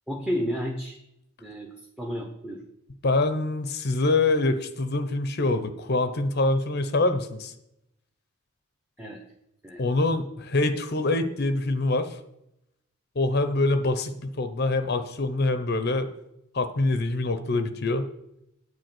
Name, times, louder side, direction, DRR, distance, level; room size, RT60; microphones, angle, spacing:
voice 1, 0.1-1.0 1.4-1.7 2.0-2.6 9.0-9.2 9.6-9.8, equal, 5° right, 1 dB, 1.0 m, -31 dB
voice 2, 3.0-7.5 9.8-12.2 13.2-16.1 16.5-18.1, left 2 dB, 50° left, 9 dB, 0.7 m, -25 dB
9.2 x 4.9 x 7.8 m, 0.81 s
head